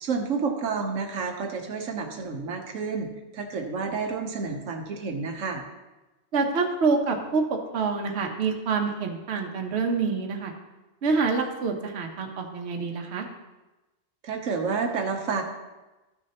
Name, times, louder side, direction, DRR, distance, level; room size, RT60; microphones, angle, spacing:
voice 1, 0.0-5.6 14.2-15.4, right 5 dB, 85° right, 3 dB, 1.2 m, -30 dB
voice 2, 6.3-10.5 11.0-13.3, right 4 dB, 60° right, 3 dB, 1.1 m, -26 dB
13.0 x 6.2 x 2.9 m, 1.1 s
omnidirectional pair, 1.3 m